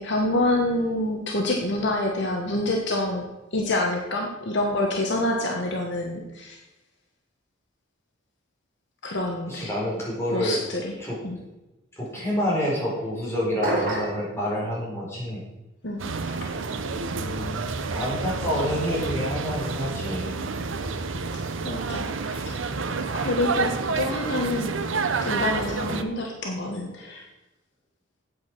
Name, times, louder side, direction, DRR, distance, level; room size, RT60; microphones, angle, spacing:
voice 1, 0.0-3.2 3.5-6.6 9.0-9.7 10.3-10.9 11.2-11.4 15.8-16.0 21.6-22.4 23.1-24.7 25.2-27.2, left 1 dB, 55° left, 1 dB, 1.4 m, -27 dB
voice 2, 9.5-10.6 11.0-11.4 12.0-15.4 17.1-20.3 23.9-24.0, equal, 10° left, -6 dB, 4.2 m, -28 dB
sound 1, 13.6-14.3, right 1 dB, 40° right, 3.7 m, -25 dB
sound 2, 16.0-26.0, right 4 dB, 65° right, 0.8 m, -29 dB
8.6 x 8.5 x 6.1 m, 1.0 s
head